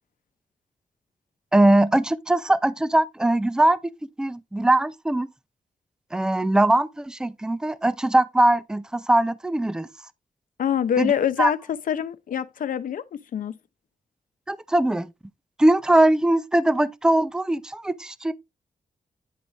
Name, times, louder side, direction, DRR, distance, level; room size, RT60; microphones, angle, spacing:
voice 1, 1.5-3.8 4.2-5.3 6.1-9.9 11.0-11.1 11.4-11.5 14.5-15.1 15.6-18.3, right 1 dB, 5° right, 0.5 m, -21 dB
voice 2, 10.6-13.6, left 8 dB, 85° left, 0.8 m, -25 dB
10.0 x 4.8 x 4.0 m
wide cardioid pair, 160°, 14 cm